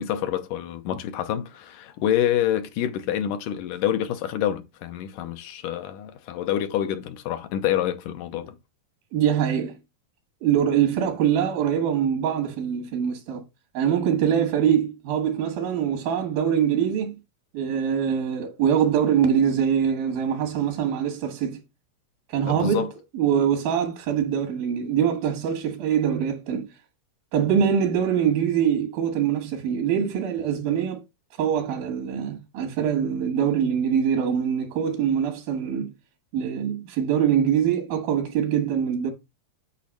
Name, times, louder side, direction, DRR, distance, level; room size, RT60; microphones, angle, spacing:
voice 1, 0.0-8.6 22.5-22.9, left 11 dB, 80° left, 2.1 m, -27 dB
voice 2, 9.1-9.7 10.4-13.4 13.7-17.2 17.5-21.6 22.3-22.9 23.1-26.7 27.3-31.0 31.4-35.9 36.3-39.1, right 8 dB, 85° right, 3.2 m, -23 dB
8.5 x 3.0 x 6.2 m
omnidirectional pair, 4.0 m